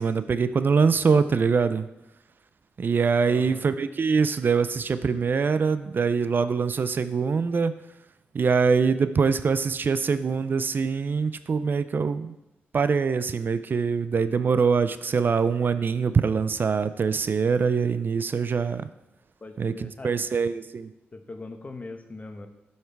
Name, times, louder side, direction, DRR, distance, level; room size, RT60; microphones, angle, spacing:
voice 1, 0.0-1.9 2.8-7.7 8.3-12.3 12.7-18.8 19.6-20.9, right 5 dB, 50° right, 13 dB, 0.4 m, -23 dB
voice 2, 3.2-3.6 19.4-20.1 21.1-22.5, left 3 dB, 35° left, 7 dB, 1.0 m, -40 dB
7.8 x 5.6 x 4.6 m, 0.89 s
cardioid pair, 65°, 4 cm